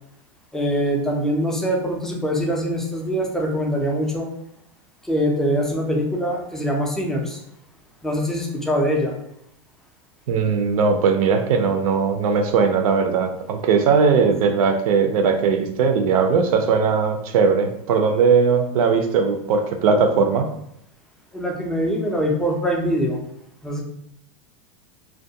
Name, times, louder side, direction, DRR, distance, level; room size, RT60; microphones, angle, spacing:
voice 1, 0.5-4.3 5.0-7.4 8.0-9.2 14.2-14.3 21.3-23.2 23.6-23.8, equal, 5° left, -1 dB, 0.3 m, -23 dB
voice 2, 10.3-20.5, right 5 dB, 80° right, 6 dB, 0.5 m, -19 dB
2.3 x 2.2 x 2.6 m, 0.73 s
supercardioid pair, 145°, 18 cm